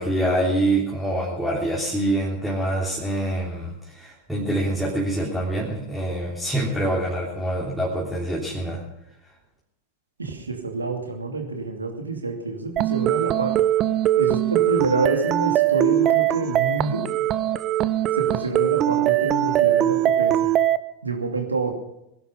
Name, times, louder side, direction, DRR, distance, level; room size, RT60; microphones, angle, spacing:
voice 1, 0.0-8.8, right 1 dB, 5° right, -6 dB, 3.4 m, -25 dB
voice 2, 10.2-13.5 14.2-17.0 18.1-20.5 21.0-21.7, right 3 dB, 80° right, 3 dB, 2.6 m, -27 dB
sound 1, 12.8-20.8, right 12 dB, 30° right, 0.7 m, -21 dB
20.5 x 11.5 x 5.6 m, 0.85 s
figure-of-eight pair, 90°, 0 cm